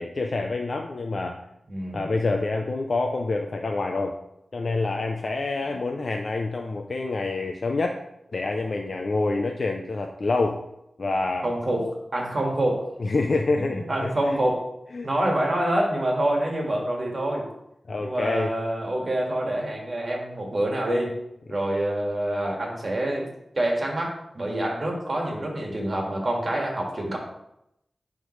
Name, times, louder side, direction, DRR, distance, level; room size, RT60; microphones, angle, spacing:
voice 1, 0.0-1.4 1.9-4.1 4.5-8.0 8.3-10.6 11.0-11.5 13.0-14.4 14.9-15.1 17.9-18.5, left 3 dB, 55° left, 3 dB, 0.5 m, -27 dB
voice 2, 1.7-2.1 11.4-12.8 13.6-14.6 15.0-17.5 18.0-21.1 21.5-23.2 23.5-27.2, right 1 dB, 45° right, -1 dB, 1.8 m, -26 dB
9.9 x 3.6 x 3.2 m, 0.81 s
wide cardioid pair, 80°, 0 cm